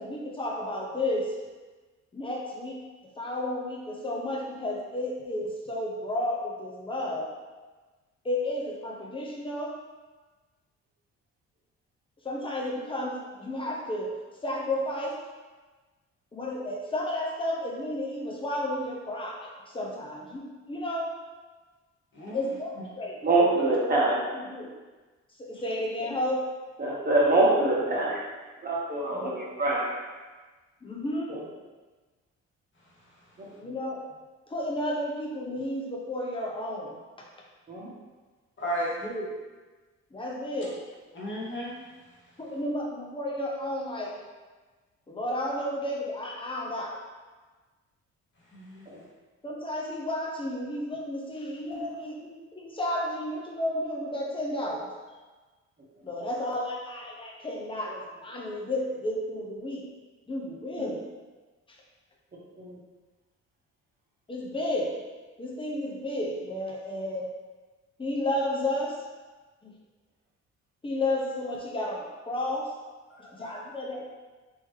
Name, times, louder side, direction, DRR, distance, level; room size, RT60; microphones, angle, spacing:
voice 1, 0.0-1.4 2.1-2.8 3.2-7.3 8.2-9.8 12.2-14.1 14.4-15.2 16.3-21.1 22.3-24.7 25.4-26.4 29.1-29.4 30.8-31.4 33.6-34.0 34.5-37.3 39.0-39.3 40.1-40.8 42.4-44.2 45.1-47.0 49.4-54.9 56.0-59.8 60.3-61.1 61.7-61.8 64.3-65.0 65.4-67.3 68.0-69.0 69.6-69.7 70.8-72.7 73.3-74.1, left 1 dB, 15° left, -3 dB, 0.8 m, -32 dB
voice 2, 23.2-24.3 26.8-28.2 28.6-29.9 37.7-37.9 62.6-62.8, right 2 dB, 30° right, -5 dB, 1.2 m, -24 dB
voice 3, 38.6-39.1 41.1-41.7 48.5-48.8 51.7-51.9 73.1-73.5, equal, 40° left, -5 dB, 1.3 m, -34 dB
3.6 x 2.9 x 3.1 m, 1.3 s
cardioid pair, 90°, 30 cm